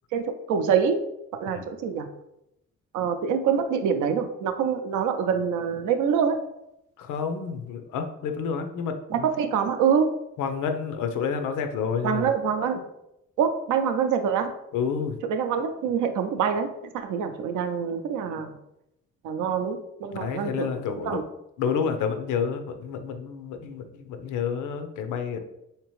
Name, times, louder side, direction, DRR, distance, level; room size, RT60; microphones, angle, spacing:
voice 1, 0.1-1.0 1.4-2.1 2.9-6.4 9.1-10.1 12.0-12.8 13.4-14.5 15.2-16.7 16.9-18.5 19.2-21.2, right 7 dB, 80° right, 7 dB, 0.5 m, -25 dB
voice 2, 7.0-9.3 10.4-12.3 14.7-15.2 20.1-21.2 21.6-25.4, left 6 dB, 80° left, 7 dB, 0.5 m, -29 dB
3.4 x 2.9 x 3.1 m, 0.83 s
cardioid pair, 90°, 30 cm